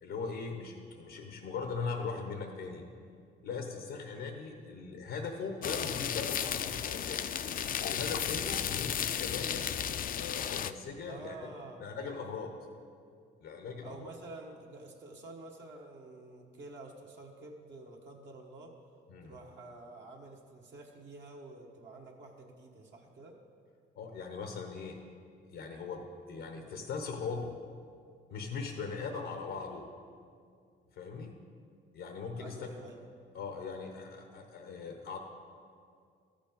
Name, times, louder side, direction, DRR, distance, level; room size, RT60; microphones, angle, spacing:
voice 1, 0.0-2.8 3.4-7.2 7.8-9.7 10.1-11.4 11.8-12.5 13.4-14.1 19.1-19.3 24.0-25.0 25.5-27.5 28.3-29.9 31.0-31.3 31.9-32.7 33.3-35.2, left 5 dB, 85° left, 4 dB, 0.9 m, -39 dB
sound 1, 5.6-10.7, left 9 dB, 45° left, 0.4 m, -34 dB
voice 2, 11.1-12.5 13.8-18.7 19.2-23.4 32.4-33.0, right 2 dB, 65° right, -1 dB, 1.2 m, -49 dB
13.5 x 5.2 x 5.3 m, 2.3 s
cardioid pair, 90°, 20 cm